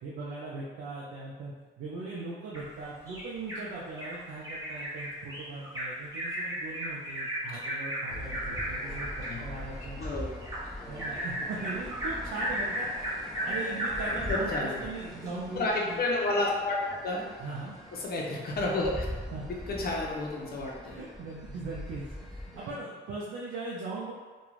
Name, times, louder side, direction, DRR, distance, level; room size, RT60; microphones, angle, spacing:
voice 1, 0.0-10.1 10.9-16.0 17.4-17.8 19.3-19.4 20.8-24.1, right 3 dB, 75° right, -6 dB, 0.5 m, -39 dB
Bird vocalization bird call bird song, 2.5-3.6 4.0-4.1 4.4-14.8 15.3-15.4 15.7-15.8, equal, 15° right, 1.0 m, -35 dB
sound 1, 8.1-22.8, left 1 dB, ahead, 0.5 m, -42 dB
voice 2, 10.0-10.3 14.3-14.8 15.5-17.2 17.9-19.1 19.5-21.0, left 2 dB, 50° left, -2 dB, 0.7 m, -31 dB
2.4 x 2.3 x 3.1 m, 1.4 s
cardioid pair, 90°, 20 cm